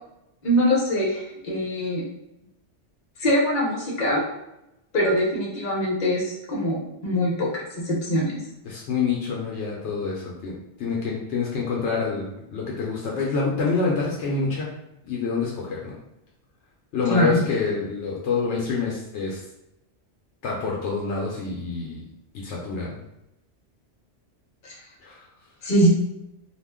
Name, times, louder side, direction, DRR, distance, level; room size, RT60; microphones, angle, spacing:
voice 1, 0.4-2.1 3.2-4.2 4.9-7.5 7.8-8.4 17.1-17.4 24.6-24.7 25.6-25.9, equal, 45° left, -4 dB, 0.9 m, -23 dB
voice 2, 8.6-14.7 15.1-15.9 16.9-19.4 20.4-22.1 22.4-23.0 25.0-25.2, left 4 dB, 75° left, -2 dB, 0.9 m, -27 dB
2.4 x 2.1 x 3.5 m, 0.88 s
omnidirectional pair, 1.2 m